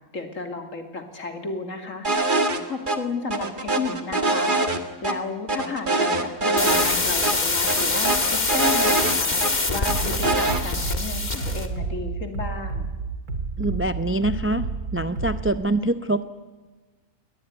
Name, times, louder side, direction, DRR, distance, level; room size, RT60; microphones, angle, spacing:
voice 1, 0.1-2.1 2.7-4.5 5.0-9.4 9.7-12.9, left 3 dB, 60° left, 5 dB, 3.1 m, -33 dB
sound 1, 2.0-2.6 2.9-3.0 3.3-5.1 5.5-7.0 7.2-7.3 7.7-9.5 9.8-10.6, right 2 dB, 35° right, 1.9 m, -23 dB
sound 2, 6.6-11.7, left 3 dB, 30° left, 1.8 m, -25 dB
Bass drum, 9.9-15.5, right 4 dB, 90° right, 2.9 m, -30 dB
voice 2, 13.6-16.3, right 1 dB, 15° right, 11 dB, 0.4 m, -25 dB
21.5 x 19.0 x 9.9 m, 1.3 s
omnidirectional pair, 1.6 m